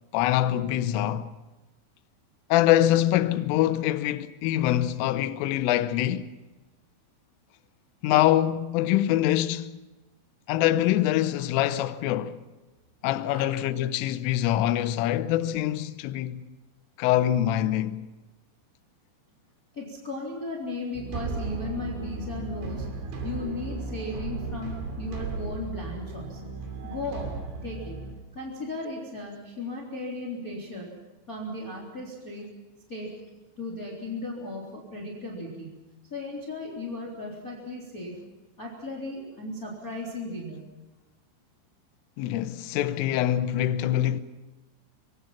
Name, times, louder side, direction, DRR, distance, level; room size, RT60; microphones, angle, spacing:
voice 1, 0.1-1.3 2.5-6.3 8.0-9.7 10.5-12.4 13.0-16.4 17.0-18.0 42.2-44.2, left 13 dB, 80° left, 3.3 m, -24 dB
voice 2, 19.7-22.9 23.2-26.4 26.8-28.1 28.3-30.9 31.3-32.5 32.9-33.1 33.6-35.7 36.1-38.2 38.6-40.6, left 2 dB, 20° left, 3.3 m, -36 dB
sound 1, 20.9-28.2, right 3 dB, 75° right, 5.5 m, -35 dB
27.0 x 22.5 x 5.8 m
omnidirectional pair, 6.0 m